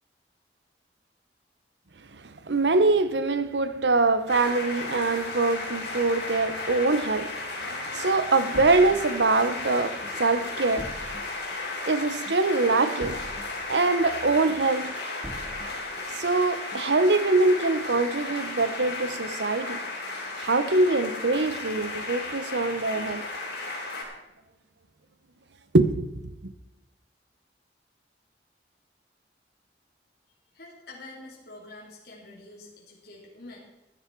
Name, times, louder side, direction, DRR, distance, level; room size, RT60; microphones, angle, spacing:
voice 1, 2.4-11.0 11.9-13.2 13.7-14.9 16.2-19.8 20.4-23.2 25.7-26.1 26.4-26.5, right 3 dB, 85° right, 0.9 m, -24 dB
sound 1, 4.3-24.0, left 3 dB, 85° left, 3.8 m, -34 dB
sound 2, 8.5-9.7 10.0-11.9 12.3-14.1 14.5-16.4 16.7-17.3, equal, 20° right, 0.8 m, -44 dB
voice 2, 30.5-33.7, left 2 dB, 65° left, 2.9 m, -46 dB
15.5 x 10.5 x 4.6 m
head